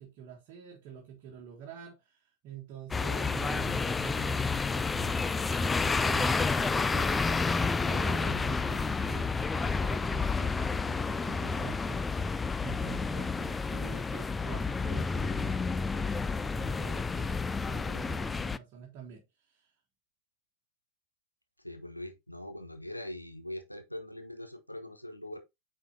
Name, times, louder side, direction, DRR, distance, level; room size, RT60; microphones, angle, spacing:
voice 1, 0.0-19.7, right 8 dB, 40° right, 1.7 m, -46 dB
sound 1, 2.9-18.6, left 4 dB, 15° left, 0.3 m, -30 dB
voice 2, 21.6-25.4, left 1 dB, 90° left, 1.2 m, -42 dB
8.9 x 4.4 x 2.7 m
figure-of-eight pair, 90°, 0 cm